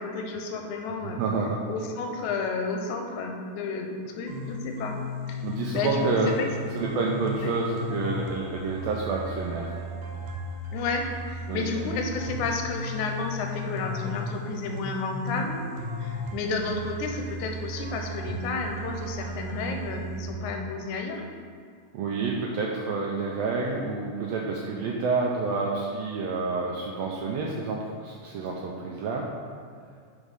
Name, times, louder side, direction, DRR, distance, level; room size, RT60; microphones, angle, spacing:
voice 1, 0.0-1.2 1.7-5.0 5.3-5.4 5.7-6.8 7.4-7.5 10.7-15.6 16.0-21.2, left 4 dB, 85° left, 3 dB, 2.0 m, -31 dB
voice 2, 1.0-1.6 5.4-6.3 6.7-9.7 11.5-11.6 21.9-29.3, right 4 dB, 90° right, -1 dB, 1.5 m, -29 dB
sound 1, 4.3-20.3, equal, 70° right, 2.0 m, -35 dB
5.3 x 4.9 x 5.2 m, 2.2 s
omnidirectional pair, 3.5 m